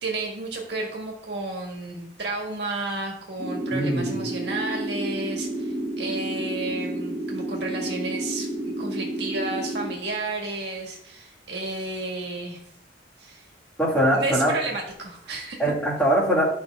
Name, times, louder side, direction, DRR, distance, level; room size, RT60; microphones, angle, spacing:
voice 1, 0.0-12.6 13.2-13.5 14.1-15.6, right 2 dB, 60° right, 0 dB, 1.8 m, -32 dB
sound 1, 3.4-9.9, right 1 dB, 20° right, 0.9 m, -30 dB
voice 2, 3.7-4.2 13.8-14.5 15.6-16.5, equal, 10° left, -6 dB, 2.3 m, -22 dB
10.5 x 5.4 x 3.6 m, 0.68 s
head